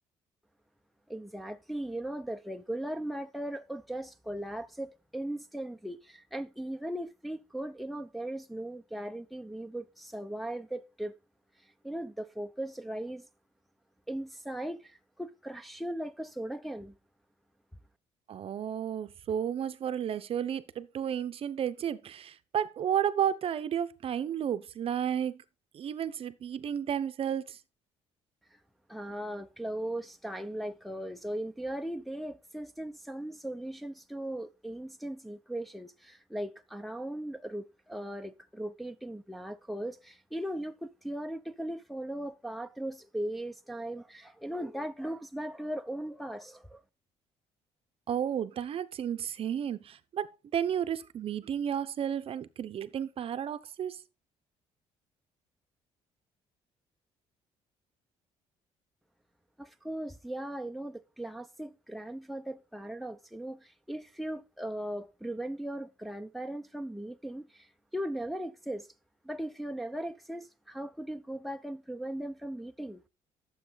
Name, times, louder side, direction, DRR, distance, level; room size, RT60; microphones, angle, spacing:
voice 1, 1.1-11.2 11.6-13.3 14.1-17.0 28.9-46.8 59.6-68.9 69.2-73.0, right 1 dB, ahead, 0.9 m, -38 dB
voice 2, 18.3-25.4 25.7-27.6 48.1-50.3 50.5-54.0, right 9 dB, 55° right, 0.9 m, -32 dB
12.5 x 7.3 x 4.0 m
cardioid pair, 95°, 12 cm